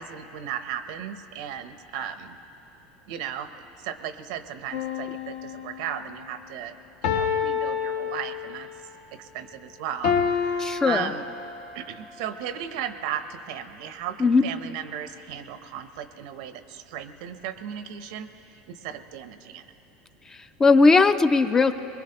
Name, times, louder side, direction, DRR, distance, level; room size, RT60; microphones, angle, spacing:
voice 1, 0.0-2.4 3.1-6.7 7.0-8.7 9.2-11.2 11.7-19.7, right 9 dB, 80° right, 10 dB, 0.8 m, -36 dB
sound 1, 4.7-6.0 7.0-8.7 10.0-11.8 12.4-12.5, left 6 dB, 75° left, 1.1 m, -28 dB
voice 2, 10.6-11.1 14.2-14.4 20.3-21.8, left 4 dB, 15° left, 11 dB, 0.4 m, -19 dB
22.0 x 21.5 x 2.9 m, 3.0 s
supercardioid pair, 150°, 3 cm